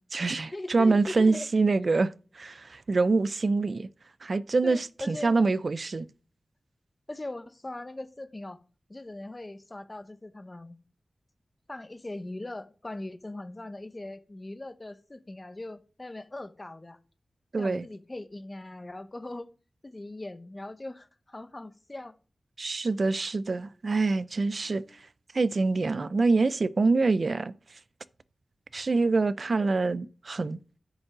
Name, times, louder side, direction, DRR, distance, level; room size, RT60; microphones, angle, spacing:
voice 1, 0.0-2.1 2.4-3.9 4.2-6.1 17.5-17.8 22.6-24.8 25.3-27.5 28.7-30.6, right 3 dB, 50° right, 0.5 m, -25 dB
voice 2, 0.5-1.5 1.9-2.0 4.6-5.3 7.1-8.6 8.9-10.8 11.7-17.0 17.6-19.5 19.8-22.2 24.6-25.0, left 2 dB, 25° left, 0.8 m, -40 dB
10.0 x 5.3 x 5.8 m
wide cardioid pair, 105°, 0 cm